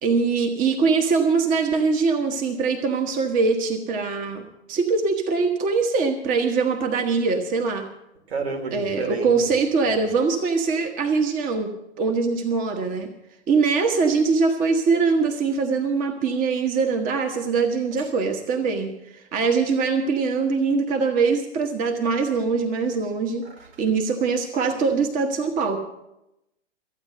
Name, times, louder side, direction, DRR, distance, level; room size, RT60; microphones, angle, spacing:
voice 1, 0.0-7.9 8.7-11.7 12.0-13.1 13.5-23.4 23.8-25.8, right 4 dB, 25° right, 5 dB, 1.2 m, -22 dB
voice 2, 8.3-9.3, right 4 dB, 70° right, 2 dB, 3.2 m, -29 dB
14.0 x 9.0 x 7.7 m, 0.87 s
hypercardioid pair, 120°, 34 cm